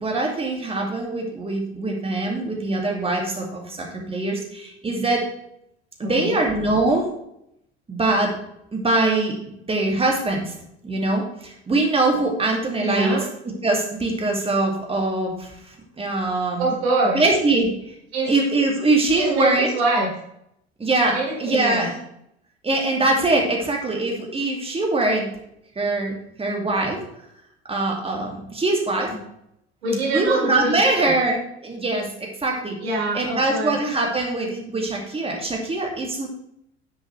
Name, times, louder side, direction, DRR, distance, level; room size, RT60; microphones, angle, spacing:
voice 1, 0.0-5.2 6.0-7.1 7.9-8.4 8.7-9.4 9.7-10.5 10.8-13.2 13.6-15.5 16.0-16.7 17.1-17.7 18.3-19.7 20.8-22.0 22.6-25.3 25.8-27.0 27.7-29.1 30.1-32.8 33.1-36.3, right 2 dB, 15° right, 1 dB, 2.6 m, -22 dB
voice 2, 6.0-6.4 12.8-13.2 16.6-17.2 18.1-18.3 19.1-20.1 21.1-21.9 29.1-29.2 29.8-31.1 32.8-33.8, right 2 dB, 70° right, -3 dB, 3.9 m, -24 dB
9.9 x 7.5 x 3.4 m, 0.76 s
figure-of-eight pair, 65°, 33 cm